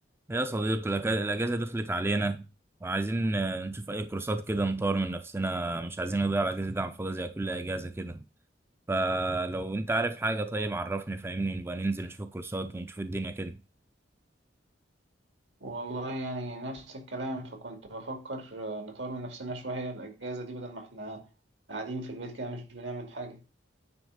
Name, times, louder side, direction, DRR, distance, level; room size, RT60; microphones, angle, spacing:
voice 1, 0.3-2.4 2.8-8.2 8.9-13.6, right 2 dB, 15° right, 0.4 m, -30 dB
voice 2, 15.6-21.2 21.7-23.4, right 2 dB, 75° right, 2.3 m, -37 dB
9.6 x 3.5 x 6.4 m
head